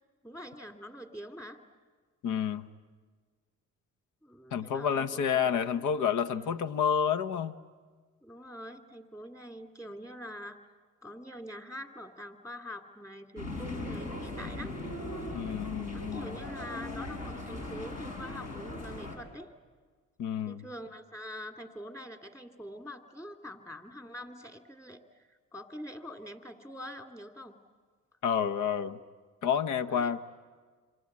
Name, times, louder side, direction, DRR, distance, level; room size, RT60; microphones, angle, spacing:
voice 1, 0.2-1.6 4.2-5.8 6.3-6.6 8.2-10.6 11.0-14.7 15.9-19.5 20.5-25.0 25.3-27.6 29.9-30.1, equal, 10° left, 5 dB, 2.4 m, -45 dB
voice 2, 2.2-2.7 4.5-7.6 15.3-16.4 20.2-20.6 28.2-29.0 29.4-30.2, left 7 dB, 80° left, 12 dB, 1.1 m, -29 dB
sound 1, 13.4-19.2, left 2 dB, 60° left, 5.9 m, -39 dB
26.5 x 25.5 x 8.5 m, 1.5 s
cardioid pair, 90°, 30 cm